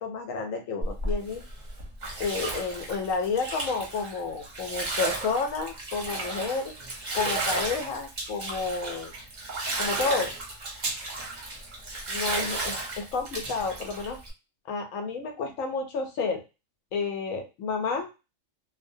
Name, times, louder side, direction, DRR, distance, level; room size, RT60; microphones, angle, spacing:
voice 1, 0.0-1.4 2.2-6.7 7.1-9.1 9.8-10.3 12.1-14.2 14.7-16.4 16.9-18.1, left 4 dB, 85° left, 4 dB, 1.1 m, -30 dB
Bathtub (filling or washing), 0.8-14.3, right 2 dB, 40° right, 0.7 m, -33 dB
2.5 x 2.1 x 2.6 m, 0.27 s
omnidirectional pair, 1.4 m